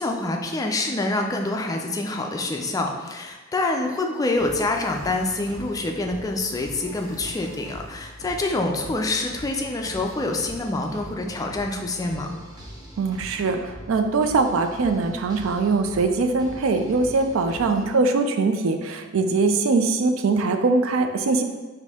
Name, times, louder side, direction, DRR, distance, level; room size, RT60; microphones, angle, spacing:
voice 1, 0.0-12.3 17.7-18.0, left 2 dB, 15° left, 2 dB, 0.3 m, -26 dB
sound 1, 4.3-17.9, equal, 20° right, 0.7 m, -42 dB
voice 2, 13.0-21.4, right 3 dB, 75° right, 6 dB, 0.4 m, -22 dB
4.2 x 2.6 x 3.5 m, 1.2 s
head